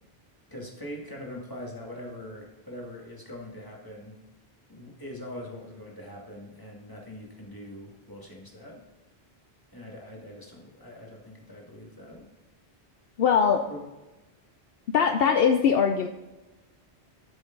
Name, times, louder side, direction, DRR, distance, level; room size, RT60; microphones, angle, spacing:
voice 1, 0.5-4.2 4.7-8.8 9.7-12.3 13.7-13.8, left 1 dB, 20° left, -2 dB, 2.2 m, -42 dB
voice 2, 13.2-13.7 14.9-16.1, left 7 dB, 65° left, 5 dB, 0.8 m, -21 dB
12.0 x 7.0 x 3.9 m, 1.1 s
omnidirectional pair, 1.1 m